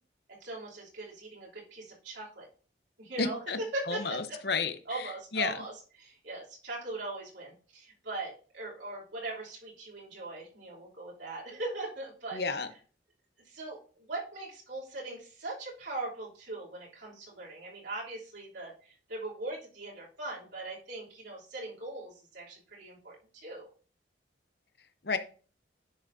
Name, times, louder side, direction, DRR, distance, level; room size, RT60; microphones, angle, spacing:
voice 1, 0.4-2.5 3.0-4.4 4.8-5.7 6.0-12.4 13.4-23.7, right 2 dB, 75° right, -5 dB, 3.1 m, -40 dB
voice 2, 3.2-3.6 3.9-5.5 12.3-12.7 25.0-25.2, left 4 dB, 60° left, 10 dB, 0.8 m, -32 dB
10.5 x 6.2 x 2.7 m, 0.39 s
head